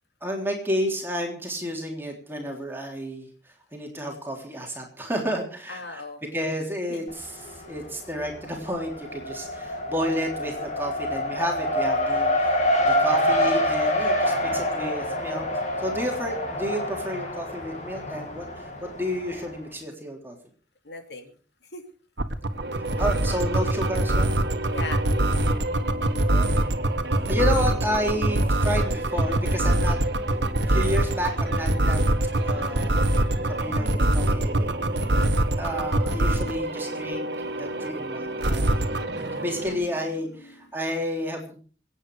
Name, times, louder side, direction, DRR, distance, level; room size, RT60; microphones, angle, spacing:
voice 1, 0.2-3.3 3.7-6.0 6.3-15.5 15.8-20.4 23.0-24.3 26.2-26.5 27.3-30.0 30.7-32.0 32.4-34.7 35.6-37.3 37.5-39.0 39.4-41.5, equal, 10° right, 1 dB, 3.5 m, -31 dB
voice 2, 5.7-6.5 6.9-7.1 20.8-21.3 21.7-21.8 24.7-25.1 27.1-27.2 31.9-32.1 32.3-35.4 35.8-36.2 39.1-40.0, left 2 dB, 70° left, 5 dB, 2.9 m, -42 dB
Race car auto racing, 7.1-7.8 8.1-19.5, left 1 dB, 40° left, 2.9 m, -26 dB
sound 1, 22.2-36.6 38.4-39.0, right 1 dB, 85° right, 1.6 m, -22 dB
sound 2, 22.4-39.9, right 1 dB, 65° right, 1.9 m, -33 dB
26.0 x 9.2 x 4.9 m, 0.42 s
head